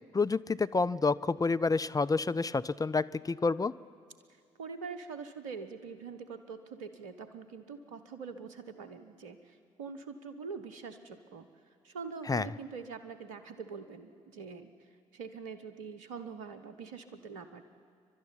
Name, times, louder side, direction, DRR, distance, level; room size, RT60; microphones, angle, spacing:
voice 1, 0.1-3.7 12.3-12.5, left 4 dB, 20° left, 14 dB, 0.6 m, -29 dB
voice 2, 4.3-11.5 11.8-17.6, right 5 dB, 80° right, 10 dB, 1.0 m, -44 dB
29.0 x 12.0 x 10.0 m, 2.2 s
hypercardioid pair, 45°, 17 cm